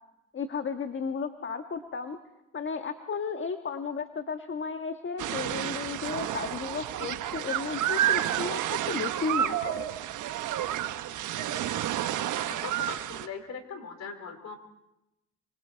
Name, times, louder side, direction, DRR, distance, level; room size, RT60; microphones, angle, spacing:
voice 1, 0.3-2.2 2.5-9.8, left 5 dB, 40° left, 7 dB, 1.5 m, -34 dB
sound 1, 5.2-13.3, right 11 dB, 85° right, 1.2 m, -30 dB
voice 2, 12.6-14.6, left 5 dB, 60° left, 7 dB, 4.3 m, -40 dB
27.0 x 25.5 x 4.6 m, 0.89 s
cardioid pair, 90°, 30 cm